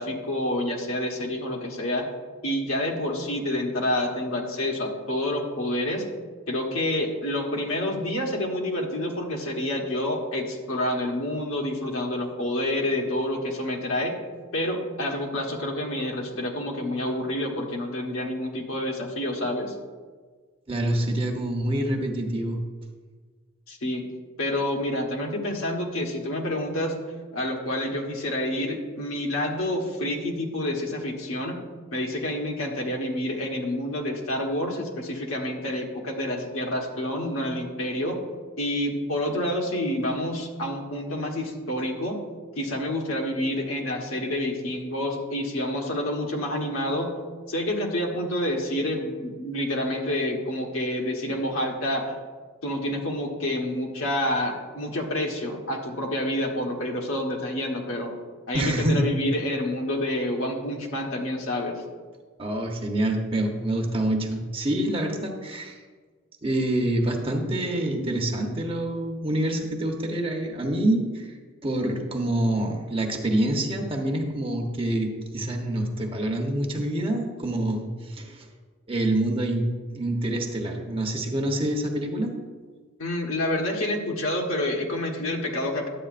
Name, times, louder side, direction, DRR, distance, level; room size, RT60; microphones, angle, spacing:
voice 1, 0.0-2.0 2.4-6.1 6.5-14.2 14.5-19.7 23.7-24.0 24.4-27.0 27.3-31.6 31.9-38.2 38.6-42.2 42.6-47.1 47.5-52.2 52.6-58.1 58.5-61.8 83.0-85.9, left 1 dB, 75° left, 1 dB, 1.3 m, -28 dB
voice 2, 20.7-22.6 58.5-59.0 62.4-65.8 66.4-71.3 71.6-78.5 78.9-79.7 79.9-82.3, right 1 dB, 25° right, 2 dB, 0.8 m, -26 dB
11.0 x 8.4 x 2.5 m, 1.5 s
head